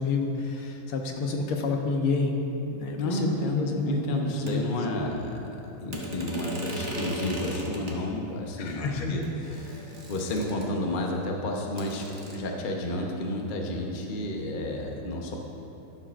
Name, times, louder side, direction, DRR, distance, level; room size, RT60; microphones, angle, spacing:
voice 1, 0.0-2.4 2.7-4.0 4.3-4.6 8.6-9.2, left 3 dB, 80° left, 2 dB, 1.8 m, -29 dB
voice 2, 3.0-5.5 5.8-9.2 9.6-15.4, left 1 dB, 50° left, 0 dB, 0.6 m, -31 dB
sound 1, 4.5-4.6 5.9-8.0 8.9-9.0 9.2-10.9 11.8-12.4, equal, 30° right, 1.0 m, -37 dB
12.5 x 11.5 x 2.5 m, 3.0 s
omnidirectional pair, 2.4 m